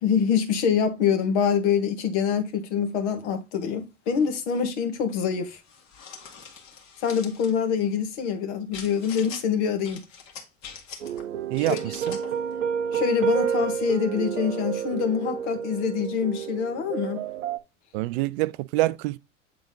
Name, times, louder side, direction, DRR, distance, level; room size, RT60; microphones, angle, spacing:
voice 1, 0.0-5.6 7.0-10.0 11.7-11.8 12.9-17.2, left 7 dB, 65° left, 1.6 m, -25 dB
sound 1, 5.7-7.5 8.7-9.4 9.8-11.2 11.5-12.4, left 6 dB, 50° left, 1.9 m, -43 dB
sound 2, 11.0-17.6, right 7 dB, 80° right, 0.8 m, -29 dB
voice 2, 17.9-19.2, right 18 dB, 60° right, 0.5 m, -25 dB
7.9 x 3.8 x 3.7 m
hypercardioid pair, 80°, 38 cm